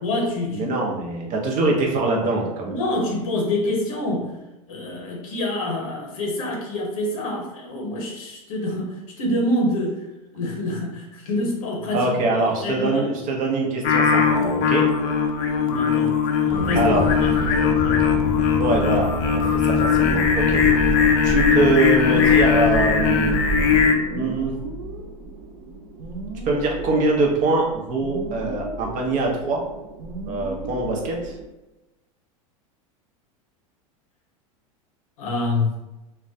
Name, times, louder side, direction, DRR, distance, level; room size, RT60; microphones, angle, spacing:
voice 1, 0.0-0.7 2.7-4.3 4.7-10.0 10.3-12.1 12.6-13.1 15.7-16.2 16.4-17.0 17.4-18.1 35.2-35.8, left 1 dB, 75° left, 0 dB, 0.8 m, -26 dB
voice 2, 0.5-2.7 11.9-14.8 16.8-17.1 18.6-20.6 21.2-24.5 26.5-29.6 30.3-31.3, right 3 dB, 45° right, 0 dB, 0.7 m, -23 dB
Singing, 13.8-23.9, left 6 dB, 60° left, 0.4 m, -19 dB
sound 1, 16.5-23.8, equal, 5° left, 0.8 m, -28 dB
sound 2, 22.0-31.5, right 3 dB, 85° right, 0.5 m, -36 dB
2.2 x 2.1 x 2.6 m, 0.99 s
hypercardioid pair, 105°, 18 cm